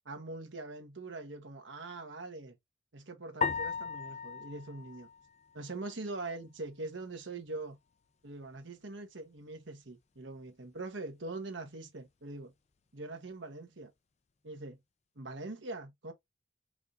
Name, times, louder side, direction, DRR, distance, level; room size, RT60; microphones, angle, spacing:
voice 1, 0.0-2.6 2.9-5.1 5.5-7.8 8.2-12.5 12.9-13.9 14.4-14.8 15.1-16.1, right 2 dB, 80° right, 1.3 m, -43 dB
sound 1, 3.4-5.9, left 5 dB, 35° left, 0.5 m, -37 dB
4.8 x 2.7 x 3.6 m
head